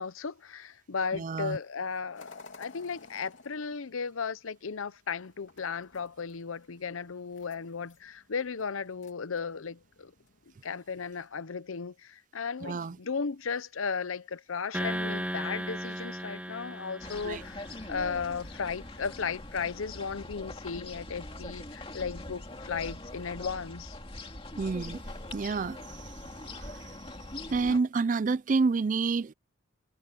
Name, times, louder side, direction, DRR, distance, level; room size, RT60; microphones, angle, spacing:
voice 1, 0.0-10.1 10.6-17.6 17.9-24.0, left 5 dB, 85° left, 0.7 m, -35 dB
voice 2, 1.1-1.6 12.6-13.0 17.2-17.4 24.6-25.0 25.3-27.0 27.5-29.3, right 4 dB, 40° right, 0.4 m, -29 dB
sound 1, 2.1-11.4, left 3 dB, 70° left, 3.1 m, -56 dB
sound 2, 14.7-18.2, equal, 5° right, 1.8 m, -36 dB
sound 3, 17.0-27.8, left 2 dB, 25° left, 2.4 m, -42 dB
head